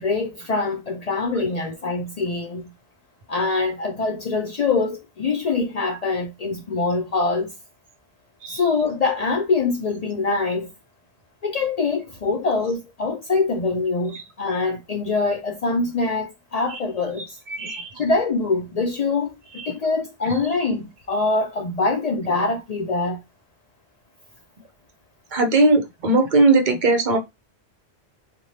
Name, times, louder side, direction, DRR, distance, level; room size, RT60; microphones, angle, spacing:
voice 1, 0.0-2.7 3.3-7.5 8.5-10.7 11.4-17.4 17.9-23.2, left 3 dB, 60° left, 0.4 m, -24 dB
voice 2, 8.4-8.7 14.1-14.2 16.7-16.8 17.2-18.0 19.5-19.8 20.2-20.4 21.1-21.3 25.3-27.2, right 2 dB, 55° right, 0.7 m, -21 dB
2.6 x 2.2 x 3.1 m
omnidirectional pair, 1.1 m